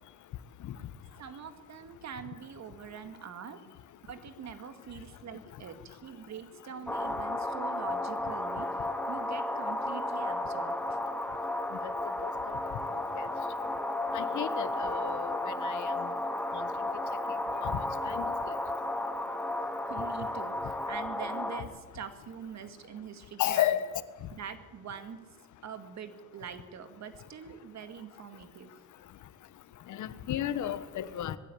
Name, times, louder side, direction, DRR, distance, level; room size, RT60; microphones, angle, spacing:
voice 1, 1.2-3.6 4.1-8.7 9.1-11.0 19.8-23.7 24.3-25.2 25.6-28.7, right 7 dB, 60° right, 8 dB, 2.2 m, -44 dB
sound 1, 6.9-21.6, left 1 dB, 5° left, 2.1 m, -33 dB
voice 2, 14.1-16.0 16.5-16.6 17.6-17.8 18.1-18.6 23.4-24.0 29.9-31.4, left 11 dB, 75° left, 13 dB, 1.3 m, -33 dB
20.5 x 16.0 x 8.6 m, 1.3 s
cardioid pair, 90°, 30 cm